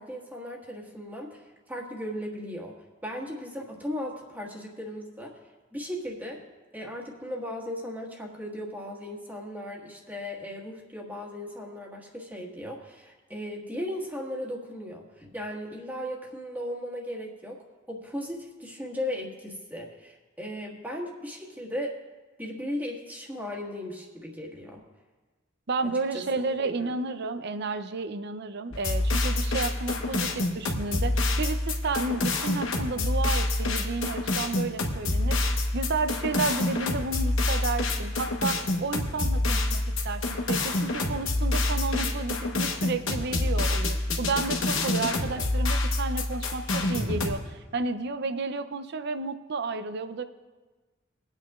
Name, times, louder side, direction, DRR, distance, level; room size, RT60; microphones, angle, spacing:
voice 1, 0.0-2.8 3.0-5.4 5.7-6.4 6.7-17.6 17.9-21.9 22.4-24.8 26.1-26.2 26.6-26.9 45.3-45.5, left 1 dB, 10° right, -2 dB, 1.6 m, -37 dB
voice 2, 25.7-35.4 35.7-50.2, right 3 dB, 55° right, 10 dB, 0.6 m, -32 dB
sound 1, 28.7-47.3, left 2 dB, 80° left, 1.2 m, -27 dB
22.5 x 8.9 x 2.4 m, 1.3 s
head